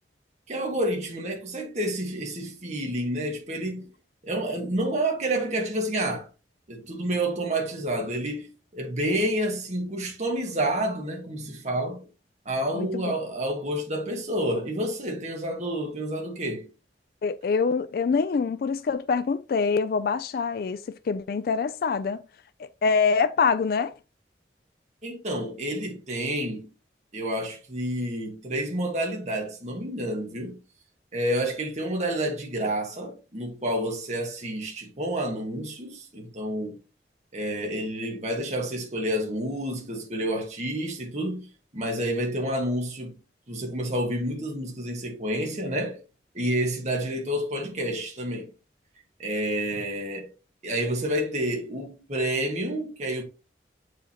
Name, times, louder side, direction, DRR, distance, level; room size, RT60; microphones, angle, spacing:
voice 1, 0.5-3.9 4.2-6.3 6.7-12.0 12.4-16.7 25.0-26.7 27.1-30.6 31.1-36.8 37.3-41.5 41.7-43.1 43.5-46.0 46.3-48.5 49.2-50.3 50.6-53.2, right 1 dB, 40° right, 1.5 m, -29 dB
voice 2, 12.7-13.1 17.2-22.2 22.6-23.9, left 5 dB, 55° left, 0.3 m, -25 dB
7.8 x 4.9 x 2.8 m
head